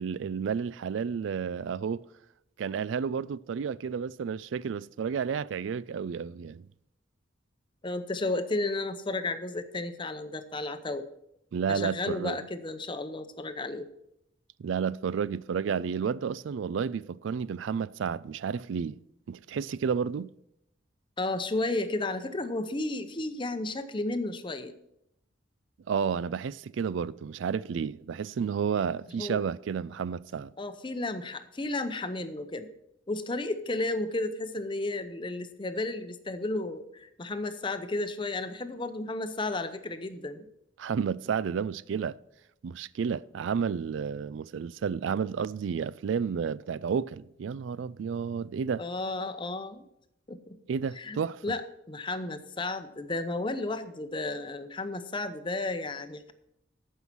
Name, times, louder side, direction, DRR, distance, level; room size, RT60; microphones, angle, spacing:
voice 1, 0.0-2.1 2.6-6.7 11.5-12.4 14.6-19.0 19.3-20.3 25.9-30.5 40.8-42.2 42.6-48.8 50.7-51.4, right 6 dB, 80° right, 0.3 m, -31 dB
voice 2, 7.8-11.1 11.7-13.9 21.2-24.7 29.2-29.4 30.6-32.7 33.1-40.5 48.8-49.9 50.3-50.6 51.0-51.6 51.9-56.3, left 2 dB, 25° left, 0.7 m, -33 dB
14.0 x 5.6 x 6.0 m
head